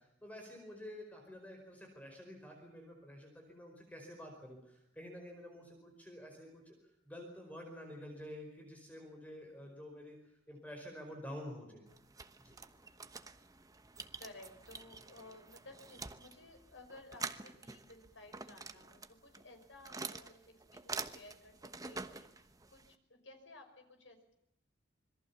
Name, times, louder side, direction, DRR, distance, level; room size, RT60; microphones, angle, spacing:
voice 1, 0.0-6.8 7.0-10.2 10.5-11.8 12.4-12.6, left 1 dB, 10° left, 3 dB, 4.9 m, -49 dB
sound 1, 11.9-22.9, right 4 dB, 20° right, 1.1 m, -47 dB
voice 2, 14.2-21.6 21.8-24.3, left 2 dB, 75° left, 6 dB, 5.6 m, -56 dB
26.5 x 22.0 x 7.1 m, 0.80 s
head